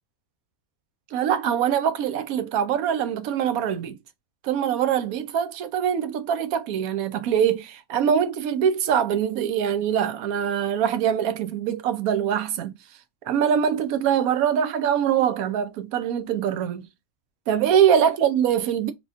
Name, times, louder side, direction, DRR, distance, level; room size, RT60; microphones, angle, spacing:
voice 1, 1.1-4.0 4.4-12.8 13.3-16.9 17.5-18.9, right 8 dB, 75° right, 1.0 m, -23 dB
4.0 x 3.0 x 2.4 m
omnidirectional pair, 1.5 m